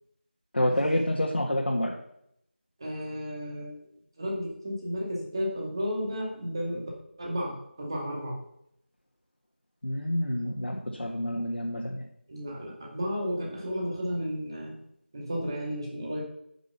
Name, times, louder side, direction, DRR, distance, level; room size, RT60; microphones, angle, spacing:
voice 1, 0.5-2.0 9.8-12.1, left 1 dB, 70° left, -2 dB, 1.8 m, -28 dB
voice 2, 2.8-3.7 4.2-6.9 7.2-8.4 12.3-14.8 15.1-16.2, equal, 25° right, -2 dB, 2.2 m, -33 dB
9.7 x 6.2 x 5.7 m, 0.74 s
figure-of-eight pair, 175°, 6 cm